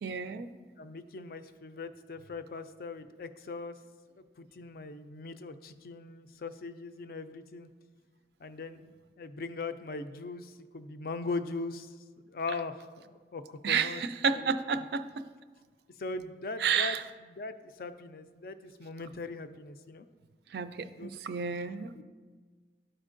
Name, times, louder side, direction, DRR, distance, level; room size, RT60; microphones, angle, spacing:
voice 1, 0.0-0.5 13.6-15.1 16.6-17.0 20.5-21.9, right 6 dB, 70° right, 11 dB, 0.4 m, -30 dB
voice 2, 0.8-3.8 4.2-7.7 8.4-12.0 12.3-14.0 14.3-14.8 16.0-17.0 17.3-20.1 20.9-21.6 21.9-22.0, left 3 dB, 55° left, 10 dB, 0.4 m, -40 dB
12.0 x 4.4 x 2.5 m, 1.5 s
head